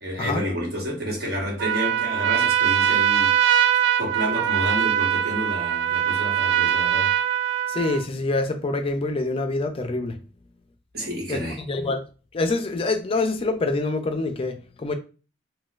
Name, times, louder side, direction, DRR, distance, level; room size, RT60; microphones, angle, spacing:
voice 1, 0.0-3.3 4.0-7.1 10.9-11.6, equal, 60° right, 1.2 m, -29 dB
Trumpet, 1.6-8.1, right 10 dB, 80° right, 0.3 m, -22 dB
voice 2, 7.7-10.2 11.3-12.0 12.3-14.9, left 2 dB, 30° left, 0.4 m, -26 dB
4.1 x 2.2 x 2.4 m
head